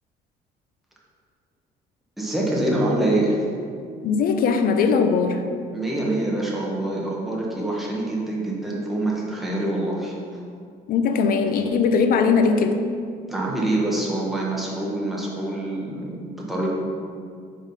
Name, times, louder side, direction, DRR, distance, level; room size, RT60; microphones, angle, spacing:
voice 1, 2.2-3.5 5.7-10.4 13.3-16.7, right 1 dB, ahead, -5 dB, 1.1 m, -25 dB
voice 2, 4.0-5.4 10.9-12.8, left 5 dB, 60° left, 7 dB, 0.5 m, -20 dB
4.8 x 3.9 x 5.4 m, 2.3 s
cardioid pair, 110°, 17 cm